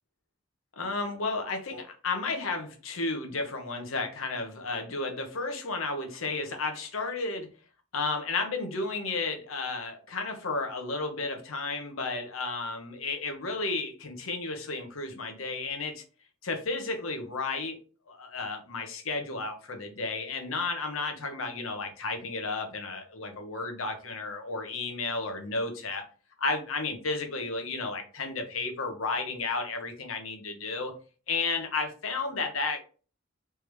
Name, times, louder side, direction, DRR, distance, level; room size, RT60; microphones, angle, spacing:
voice 1, 0.8-7.5 7.9-16.0 16.4-17.8 18.1-26.0 26.4-30.9 31.3-32.8, left 3 dB, 85° left, 5 dB, 0.9 m, -33 dB
3.4 x 3.3 x 3.1 m, 0.38 s
head